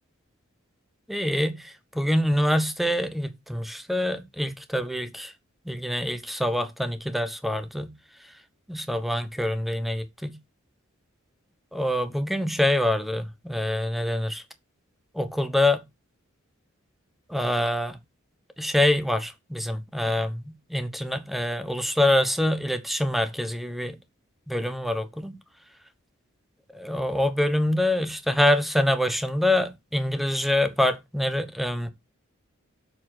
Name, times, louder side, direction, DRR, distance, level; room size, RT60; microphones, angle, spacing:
voice 1, 1.1-5.3 5.7-7.9 8.7-10.4 11.7-14.4 15.1-15.8 17.3-18.0 18.6-24.0 24.5-25.3 26.7-31.9, left 1 dB, ahead, 0.9 m, -25 dB
7.3 x 4.3 x 6.0 m
head